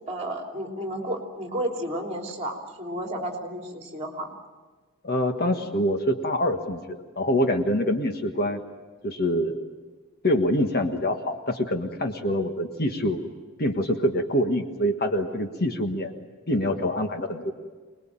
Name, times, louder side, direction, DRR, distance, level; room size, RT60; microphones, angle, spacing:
voice 1, 0.1-4.3, right 1 dB, 30° right, 2 dB, 3.3 m, -32 dB
voice 2, 5.0-8.6 9.0-9.6 10.2-13.2 13.6-16.1 16.5-17.5, equal, 45° left, 6 dB, 1.6 m, -25 dB
25.0 x 20.5 x 8.9 m, 1.3 s
head